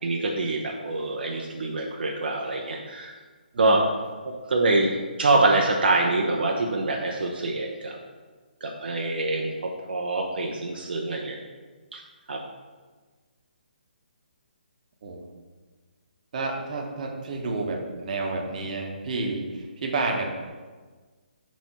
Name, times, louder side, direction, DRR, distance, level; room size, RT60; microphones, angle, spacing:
voice 1, 0.0-3.2 3.6-4.0 4.2-8.0 8.6-11.4 11.9-12.0 12.3-12.4, right 2 dB, 70° right, 0 dB, 0.8 m, -25 dB
voice 2, 16.3-20.3, right 3 dB, 45° right, 1 dB, 1.1 m, -30 dB
4.6 x 4.1 x 5.5 m, 1.4 s
hypercardioid pair, 150°, 5 cm